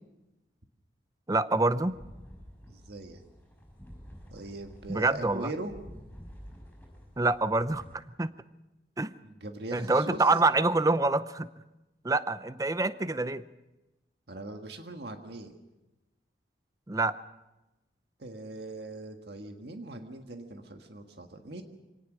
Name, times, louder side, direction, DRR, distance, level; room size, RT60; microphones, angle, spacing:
voice 1, 1.3-2.0 4.9-5.5 7.2-8.3 9.0-9.1 9.7-11.5 12.0-13.4 16.9-17.2, right 3 dB, 20° right, 14 dB, 0.6 m, -26 dB
sound 1, 1.7-8.0, equal, 10° left, 5.6 m, -50 dB
voice 2, 2.7-3.2 4.3-5.7 9.2-10.2 14.3-15.5 18.2-21.6, right 2 dB, 65° right, 5 dB, 1.6 m, -41 dB
24.5 x 18.0 x 6.3 m, 1.0 s
head